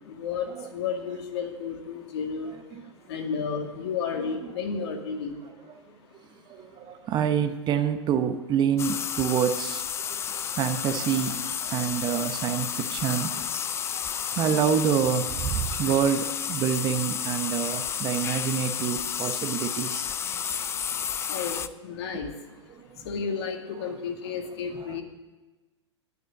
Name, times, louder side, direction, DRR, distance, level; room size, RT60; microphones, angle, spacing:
voice 1, 0.1-2.5 3.1-5.3 15.7-15.9 21.3-22.3 23.1-25.0, left 6 dB, 60° left, 2.1 m, -32 dB
voice 2, 6.5-13.6 13.9-20.1 22.1-22.2 22.8-23.1 24.9-25.0, right 8 dB, 30° right, 0.8 m, -27 dB
sound 1, 8.8-21.7, left 8 dB, 15° left, 0.4 m, -31 dB
9.5 x 9.3 x 7.7 m
hypercardioid pair, 105°, 15 cm